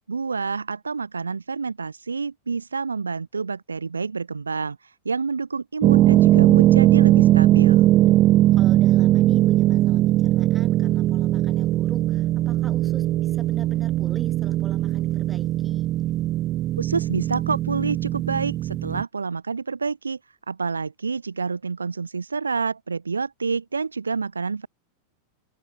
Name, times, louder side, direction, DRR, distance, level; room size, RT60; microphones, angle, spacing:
voice 1, 0.1-7.9 16.8-20.2 20.5-24.7, right 4 dB, 75° right, 1.0 m, -28 dB
sound 1, 5.8-19.0, right 15 dB, 35° right, 0.6 m, -19 dB
voice 2, 8.6-15.9, right 5 dB, 15° right, 7.6 m, -43 dB
open air
figure-of-eight pair, 90°, 0 cm